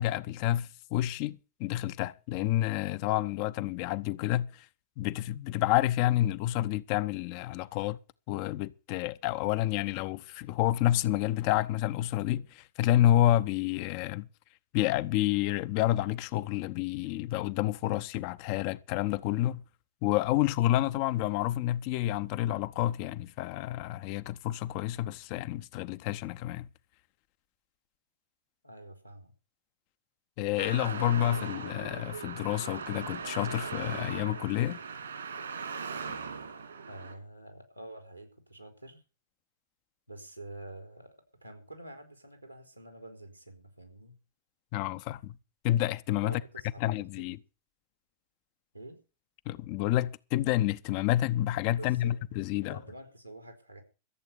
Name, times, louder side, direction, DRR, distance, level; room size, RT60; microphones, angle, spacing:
voice 1, 0.0-4.7 5.0-8.0 8.3-14.3 14.7-19.6 20.0-26.7 30.4-34.8 44.7-45.3 45.6-46.4 46.8-47.4 49.5-52.8, left 14 dB, 45° left, 0.9 m, -29 dB
voice 2, 28.6-29.3 36.9-39.0 40.1-41.1 41.4-44.1 46.2-47.4 48.7-49.0 51.8-52.2 52.5-53.8, right 2 dB, 90° right, 4.0 m, -47 dB
Traffic noise roadway noise, 30.6-37.1, right 5 dB, 70° right, 3.3 m, -39 dB
14.0 x 8.3 x 6.9 m
figure-of-eight pair, 90°, 0 cm